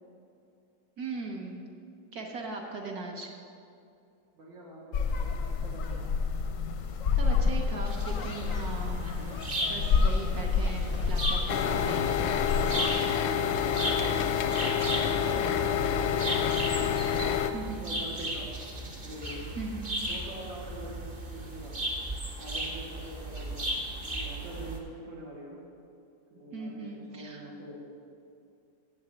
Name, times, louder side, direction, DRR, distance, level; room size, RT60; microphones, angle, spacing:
voice 1, 1.0-1.6 2.1-3.3 7.2-9.1 9.7-12.5 17.5-17.9 19.6-19.9 26.5-27.5, right 3 dB, 55° right, 0 dB, 1.4 m, -39 dB
voice 2, 4.3-5.1 5.5-6.1 14.1-14.6 15.1-18.5 19.0-19.5 20.1-21.8 22.4-23.7 24.0-25.6 26.3-27.8, right 1 dB, 85° right, -4 dB, 2.6 m, -44 dB
sound 1, 4.9-12.9, left 5 dB, 65° left, 0.8 m, -29 dB
sound 2, 7.9-24.8, right 1 dB, 25° right, 1.0 m, -36 dB
sound 3, 11.5-17.5, left 8 dB, 85° left, 1.3 m, -28 dB
8.0 x 7.1 x 7.8 m, 2.5 s
omnidirectional pair, 2.1 m